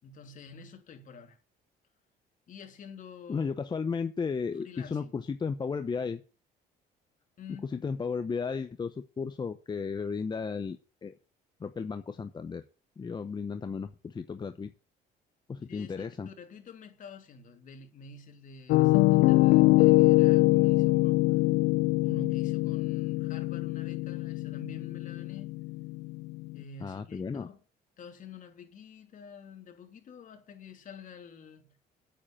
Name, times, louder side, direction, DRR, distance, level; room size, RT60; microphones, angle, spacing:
voice 1, 0.0-1.4 2.5-3.5 3.8-4.1 4.6-5.2 7.4-7.7 15.7-21.4 22.0-25.5 26.5-27.6 28.0-31.7, left 4 dB, 50° left, 3.1 m, -48 dB
voice 2, 3.3-6.2 7.7-10.8 11.0-11.1 11.6-12.6 13.0-14.7 15.5-16.3 26.8-27.5, left 5 dB, 25° left, 0.8 m, -34 dB
Piano, 18.7-26.6, left 20 dB, 90° left, 0.5 m, -23 dB
8.9 x 7.6 x 8.9 m
cardioid pair, 110°, 17 cm